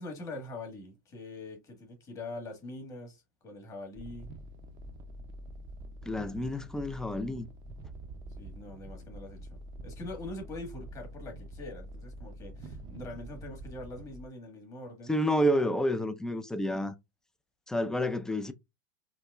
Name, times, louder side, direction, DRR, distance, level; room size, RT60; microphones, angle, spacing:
voice 1, 0.0-4.3 8.4-15.1, left 2 dB, 30° left, 1.6 m, -43 dB
sound 1, 4.0-14.2, right 1 dB, 40° right, 0.6 m, -46 dB
voice 2, 6.0-7.5 15.1-16.9 17.7-18.5, equal, 5° left, 0.4 m, -29 dB
4.9 x 2.1 x 2.3 m
hypercardioid pair, 105°, 11 cm